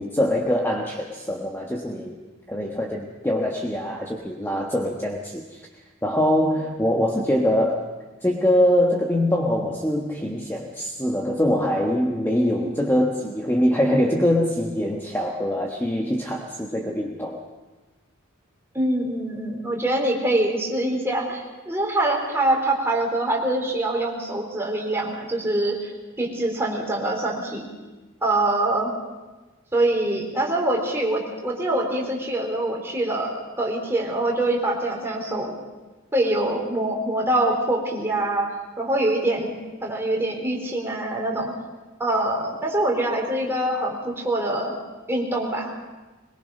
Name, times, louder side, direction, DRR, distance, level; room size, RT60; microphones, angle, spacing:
voice 1, 0.0-2.2 2.5-5.7 6.0-7.9 8.2-17.4, left 1 dB, 10° left, 0 dB, 1.3 m, -23 dB
voice 2, 18.7-25.9 26.2-27.6 28.2-28.9 29.7-35.6 36.1-38.5 38.8-39.5 39.8-41.5 42.0-44.7 45.1-45.7, right 1 dB, 10° right, -1 dB, 3.9 m, -24 dB
22.5 x 22.0 x 5.5 m, 1.2 s
head